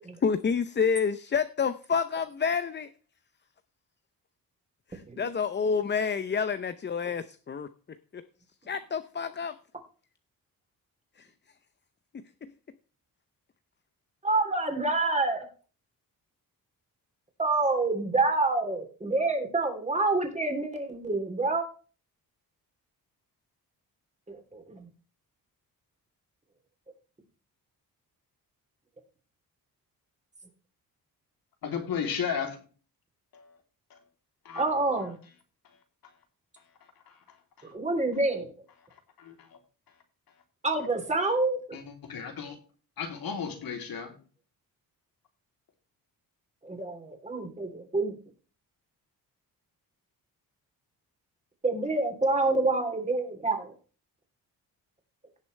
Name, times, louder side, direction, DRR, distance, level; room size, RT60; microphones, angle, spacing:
voice 1, 0.2-2.9 4.9-7.7 8.1-8.2 8.7-9.6 11.2-11.3 12.4-12.5, left 6 dB, 30° left, 0.6 m, -28 dB
voice 2, 14.2-15.5 17.4-21.6 24.3-24.9 34.5-35.2 37.6-38.5 40.6-41.6 46.6-48.1 51.6-53.7, right 3 dB, 20° right, 3.2 m, -27 dB
voice 3, 31.6-32.6 33.3-33.5 33.9-34.0 34.4-34.7 37.1-37.2 37.6-37.7 39.2-39.6 41.7-42.6 43.0-44.1, left 7 dB, 70° left, 3.2 m, -34 dB
17.5 x 6.7 x 3.2 m
cardioid pair, 110°, 36 cm